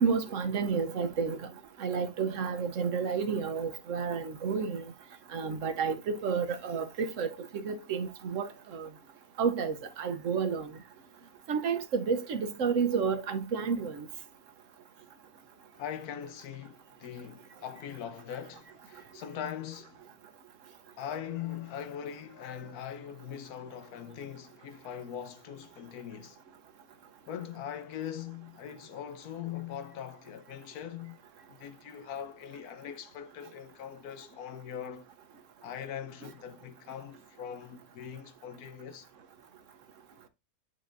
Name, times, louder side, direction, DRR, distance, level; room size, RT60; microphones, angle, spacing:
voice 1, 0.0-1.5 1.8-4.9 5.3-8.9 9.4-10.7 11.5-14.1 36.2-36.3, right 6 dB, 65° right, 1.0 m, -31 dB
voice 2, 15.7-20.0 21.0-26.4 27.3-31.2 31.6-35.1 35.6-39.1, left 9 dB, 85° left, 1.2 m, -41 dB
9.4 x 3.9 x 2.5 m
omnidirectional pair, 1.6 m